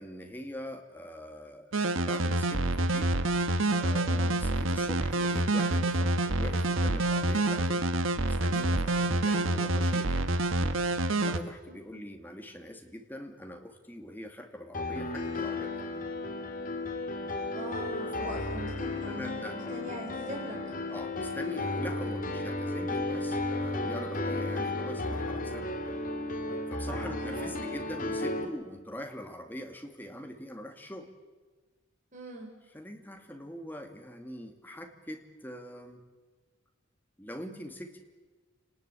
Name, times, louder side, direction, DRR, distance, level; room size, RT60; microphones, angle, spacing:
voice 1, 0.0-3.1 3.8-7.9 8.2-10.3 11.3-15.9 18.2-18.4 18.9-19.8 20.9-26.0 26.7-31.1 32.7-36.0 37.2-38.0, equal, 10° left, 4 dB, 2.4 m, -43 dB
sound 1, 1.7-11.4, right 2 dB, 80° right, 1.4 m, -27 dB
voice 2, 4.0-4.3 9.0-9.2 11.9-12.0 17.5-20.6 26.8-27.7 32.1-32.5, right 1 dB, 40° right, 0 dB, 4.1 m, -41 dB
Piano, 14.7-28.5, left 2 dB, 45° left, 2.3 m, -34 dB
29.0 x 19.5 x 8.5 m, 1.3 s
head